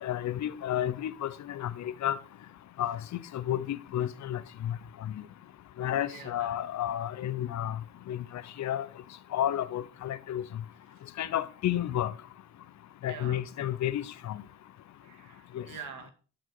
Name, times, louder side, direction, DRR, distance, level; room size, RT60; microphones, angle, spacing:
voice 1, 0.0-2.2 2.8-3.0 3.3-4.8 5.0-5.1 5.8-7.8 8.1-8.2 8.6-8.9 9.3-10.4 11.2-12.1 13.0-14.4 15.5-15.6, left 11 dB, 65° left, 0.9 m, -31 dB
voice 2, 6.1-6.6 13.1-13.4 15.0-16.1, right 6 dB, 90° right, 2.2 m, -45 dB
12.0 x 6.0 x 5.0 m
cardioid pair, 90°, 30 cm